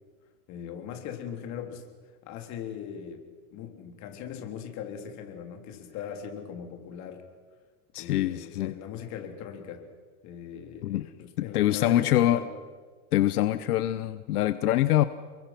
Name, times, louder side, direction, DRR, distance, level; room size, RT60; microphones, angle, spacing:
voice 1, 0.5-1.8 2.2-3.2 3.5-7.2 8.0-9.9 10.2-12.5, left 8 dB, 40° left, 4 dB, 3.6 m, -39 dB
voice 2, 7.9-8.7 10.8-11.1 11.4-12.4 13.1-15.0, left 13 dB, 85° left, 13 dB, 1.1 m, -24 dB
29.0 x 23.0 x 6.1 m, 1.5 s
supercardioid pair, 150°, 44 cm